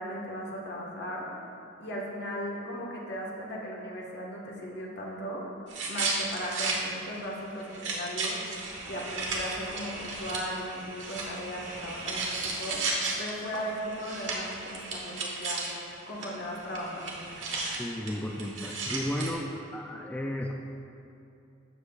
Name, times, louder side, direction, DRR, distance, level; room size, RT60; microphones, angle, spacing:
voice 1, 0.0-1.4 1.8-5.5 5.9-8.4 8.9-15.7 16.1-17.3, equal, 65° left, -3 dB, 1.5 m, -37 dB
sound 1, 5.7-6.8 7.2-7.3 7.6-15.9 16.2-16.3 16.5-19.3, right 3 dB, 70° right, 1.4 m, -34 dB
voice 2, 17.8-19.5 19.7-20.5, left 1 dB, 10° left, 0 dB, 0.4 m, -33 dB
12.5 x 7.2 x 2.4 m, 2.7 s
head